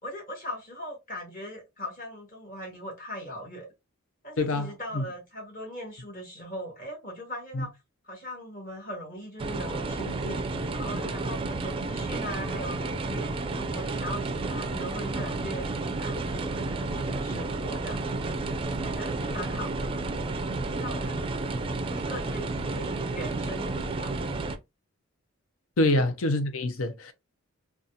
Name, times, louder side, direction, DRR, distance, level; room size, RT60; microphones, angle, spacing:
voice 1, 0.0-3.7 4.2-7.7 8.0-10.4 10.7-13.2 13.6-15.7 16.0-18.0 18.7-20.0 20.7-21.3 21.9-24.1, equal, 45° left, 1.7 m, -40 dB
voice 2, 4.4-5.0 7.5-7.6 25.8-27.1, left 2 dB, 85° left, 0.7 m, -26 dB
sound 1, 9.4-24.6, right 3 dB, 25° right, 0.4 m, -31 dB
3.9 x 2.4 x 2.7 m
head